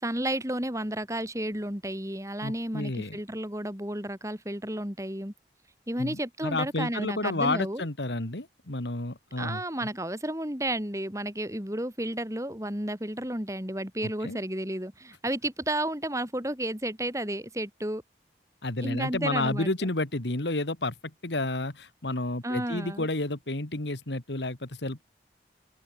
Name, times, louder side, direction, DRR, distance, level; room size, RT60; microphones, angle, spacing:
voice 1, 0.0-5.3 5.9-7.8 9.4-18.0 18.8-19.7 22.4-23.1, right 1 dB, 15° right, 4.6 m, -32 dB
voice 2, 2.4-3.2 6.0-9.9 14.0-14.4 18.6-25.0, left 2 dB, 85° left, 2.3 m, -31 dB
open air
head